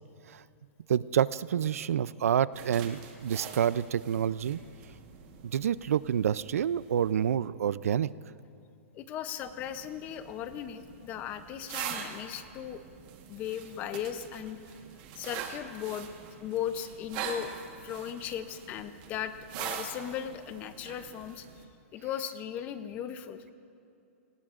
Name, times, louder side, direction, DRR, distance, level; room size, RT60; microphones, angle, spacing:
voice 1, 0.9-4.6 5.4-8.1, right 9 dB, 85° right, 18 dB, 0.4 m, -28 dB
sound 1, 2.5-7.4 9.4-21.6, right 7 dB, 35° right, 1.3 m, -44 dB
voice 2, 8.9-12.8 13.3-14.8 15.2-16.1 16.4-17.5 17.8-21.5 21.9-23.4, left 10 dB, 20° left, 11 dB, 0.6 m, -37 dB
29.0 x 19.5 x 2.5 m, 2.6 s
hypercardioid pair, 165°, 8 cm